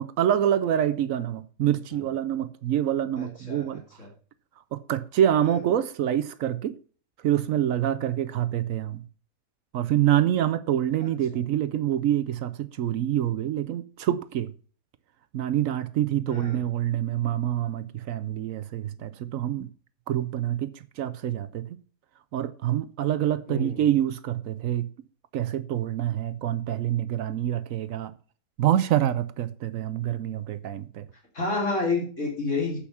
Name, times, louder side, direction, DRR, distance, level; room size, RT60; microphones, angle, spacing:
voice 1, 0.0-3.8 4.7-6.7 7.2-9.0 9.7-14.5 15.3-19.7 20.1-21.7 22.3-24.9 25.3-28.1 28.6-31.1, right 11 dB, 70° right, 1.0 m, -26 dB
voice 2, 3.2-4.1 5.4-5.6 11.0-11.1 16.3-16.6 23.5-23.8 31.3-32.8, left 3 dB, 55° left, 3.0 m, -30 dB
8.5 x 5.8 x 6.9 m
omnidirectional pair, 1.5 m